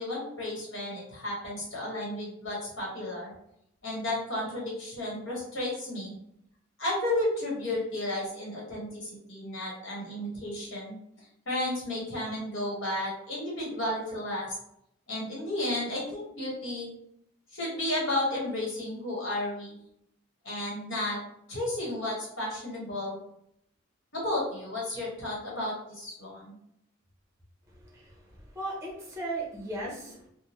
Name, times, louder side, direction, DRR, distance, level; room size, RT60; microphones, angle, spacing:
voice 1, 0.0-3.3 3.8-6.1 6.8-11.0 11.4-14.6 15.1-16.9 17.5-19.8 20.4-21.2 21.5-23.2 24.1-26.5, left 1 dB, 60° left, -5 dB, 1.4 m, -33 dB
voice 2, 27.7-30.3, right 2 dB, 15° right, -3 dB, 0.8 m, -37 dB
3.7 x 2.2 x 3.0 m, 0.75 s
head